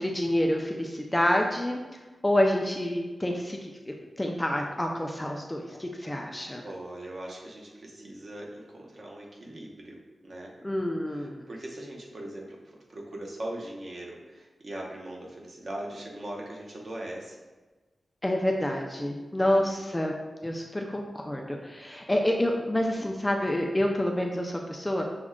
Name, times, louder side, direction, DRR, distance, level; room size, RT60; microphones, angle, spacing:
voice 1, 0.0-1.8 2.2-6.6 10.6-11.5 18.2-20.2 20.4-25.0, left 1 dB, 10° left, 1 dB, 0.3 m, -28 dB
voice 2, 6.6-10.5 11.2-17.3 19.4-19.7 23.0-23.1, right 1 dB, 45° right, -1 dB, 0.7 m, -40 dB
5.9 x 2.1 x 3.6 m, 1.2 s
wide cardioid pair, 175°, 0 cm